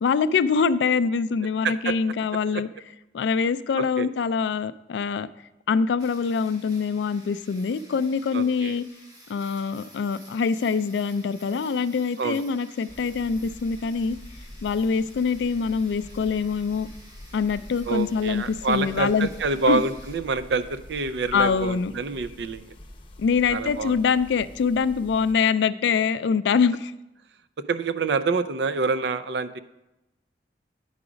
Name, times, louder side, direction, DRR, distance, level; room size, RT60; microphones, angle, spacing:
voice 1, 0.0-2.7 3.1-5.3 5.7-8.8 9.3-14.2 14.6-16.9 17.3-19.3 19.7-19.8 21.3-21.9 23.2-26.9, left 5 dB, 70° left, 14 dB, 0.3 m, -24 dB
sound 1, 6.0-20.2, right 1 dB, 20° right, 1.6 m, -52 dB
voice 2, 8.3-8.8 12.2-12.4 17.8-22.7 23.5-24.0 27.7-29.6, right 4 dB, 70° right, 13 dB, 0.5 m, -27 dB
sound 2, 12.9-25.3, left 1 dB, 30° left, 0.8 m, -45 dB
9.7 x 4.8 x 5.0 m, 0.94 s
head